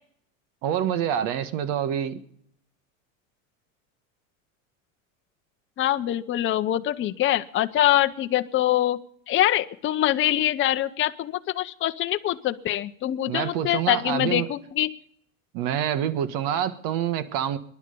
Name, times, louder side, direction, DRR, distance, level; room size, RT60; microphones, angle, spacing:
voice 1, 0.6-2.2 13.3-14.5 15.5-17.6, right 9 dB, 60° right, 1.6 m, -26 dB
voice 2, 5.8-9.0 9.3-14.9, left 13 dB, 30° left, 0.8 m, -24 dB
23.0 x 11.0 x 5.4 m
supercardioid pair, 115°, 39 cm